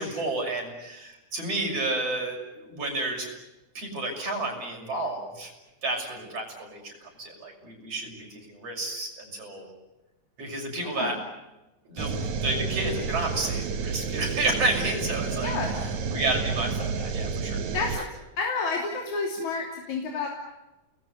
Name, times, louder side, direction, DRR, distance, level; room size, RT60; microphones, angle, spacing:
voice 1, 0.0-3.3 3.7-5.5 5.8-9.7 10.4-11.2 11.9-15.5 16.1-17.6 17.9-18.0, right 2 dB, 55° right, 1 dB, 7.8 m, -31 dB
sound 1, 12.0-18.0, right 5 dB, 75° right, 2.9 m, -30 dB
voice 2, 15.4-15.7 17.7-18.0 18.4-20.3, left 4 dB, 80° left, 1 dB, 4.5 m, -30 dB
30.0 x 21.0 x 8.1 m, 1.0 s
omnidirectional pair, 3.3 m